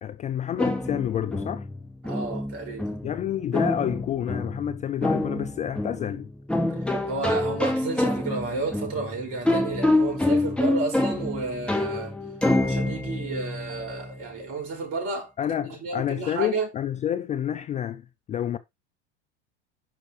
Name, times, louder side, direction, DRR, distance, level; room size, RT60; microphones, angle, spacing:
voice 1, 0.0-1.7 3.0-6.3 15.4-18.6, left 10 dB, 20° left, 0.4 m, -29 dB
sound 1, 0.6-14.2, left 1 dB, 5° left, 2.9 m, -27 dB
voice 2, 2.1-3.0 7.1-12.1 12.6-15.3 15.7-16.7, right 3 dB, 40° right, 5.7 m, -32 dB
10.5 x 6.0 x 3.2 m
figure-of-eight pair, 80°, 35 cm